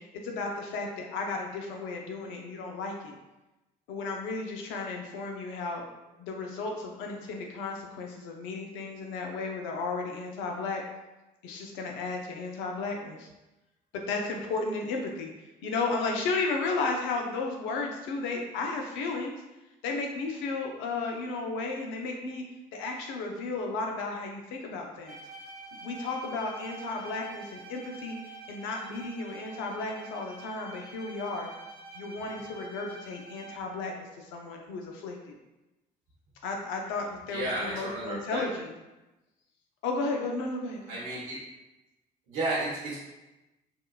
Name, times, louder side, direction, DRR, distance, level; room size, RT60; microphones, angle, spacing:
voice 1, 0.0-3.2 3.9-5.9 6.2-10.8 11.4-13.3 13.9-15.3 15.6-19.3 19.8-22.4 22.7-25.2 25.8-28.2 28.5-31.5 31.9-35.4 36.4-38.7 39.8-41.0, left 3 dB, 80° left, 1 dB, 0.5 m, -34 dB
Bowed string instrument, 25.0-33.8, right 3 dB, 50° right, 0.9 m, -46 dB
voice 2, 37.3-38.4 40.9-41.4 42.3-43.0, right 2 dB, 85° right, -6 dB, 0.9 m, -32 dB
3.6 x 2.3 x 2.3 m, 1.0 s
hypercardioid pair, 55°, 19 cm